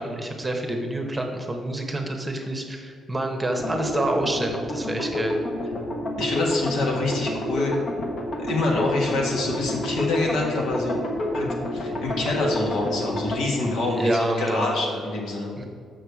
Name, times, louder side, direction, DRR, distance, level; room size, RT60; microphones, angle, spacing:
voice 1, 0.0-5.4 13.9-14.7 15.6-15.7, right 1 dB, 15° right, 3 dB, 0.9 m, -27 dB
sound 1, 3.6-13.4, left 1 dB, 50° left, 1.1 m, -29 dB
voice 2, 6.2-7.8 8.4-11.0 11.3-15.5, left 2 dB, 85° left, -1 dB, 1.6 m, -26 dB
6.7 x 6.3 x 4.8 m, 2.1 s
cardioid pair, 130°, 0 cm